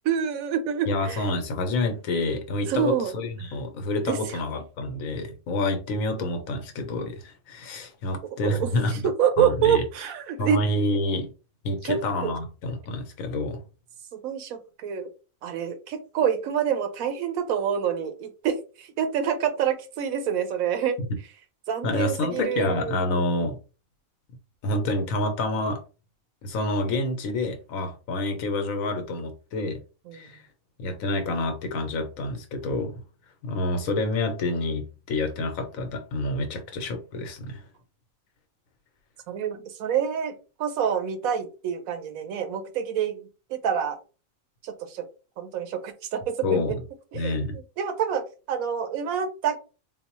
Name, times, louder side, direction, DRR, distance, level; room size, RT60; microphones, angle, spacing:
voice 1, 0.0-1.3 2.7-3.1 4.1-4.2 8.6-8.7 9.0-10.6 11.8-12.3 14.1-15.1 15.4-21.0 21.7-23.2 30.1-30.3 39.3-43.2 43.5-44.0 44.6-45.1 45.4-46.6 47.1-49.6, right 8 dB, 85° right, 1.1 m, -27 dB
voice 2, 0.9-9.1 9.4-9.8 10.4-11.3 11.6-13.6 21.8-23.6 24.6-25.8 26.4-29.8 30.1-30.4 30.8-32.9 33.4-37.6 46.4-46.8 47.1-47.6, left 2 dB, 80° left, 1.1 m, -28 dB
3.8 x 2.0 x 2.9 m
omnidirectional pair, 1.4 m